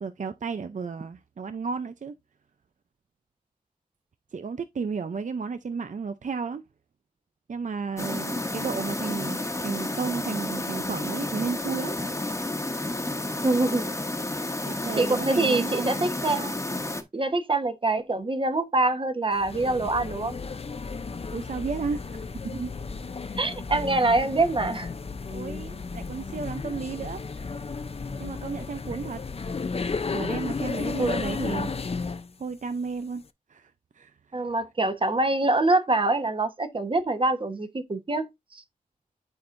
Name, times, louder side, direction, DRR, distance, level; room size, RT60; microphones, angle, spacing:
voice 1, 0.0-2.1 4.3-6.6 7.5-12.4 12.7-13.0 14.7-16.1 21.3-22.7 23.2-23.4 25.3-27.6 28.2-29.2 30.1-31.7 32.4-33.2 33.5-34.4, right 5 dB, 55° right, 0.5 m, -33 dB
sound 1, 8.0-17.0, left 1 dB, 20° left, 1.2 m, -31 dB
voice 2, 13.4-13.9 15.0-16.6 17.1-20.4 23.4-24.9 31.0-31.2 34.3-38.3 38.5-38.6, right 2 dB, 35° right, 1.2 m, -25 dB
sound 2, 19.3-32.3, left 4 dB, 40° left, 0.6 m, -33 dB
11.5 x 4.5 x 2.6 m
wide cardioid pair, 95°, 15 cm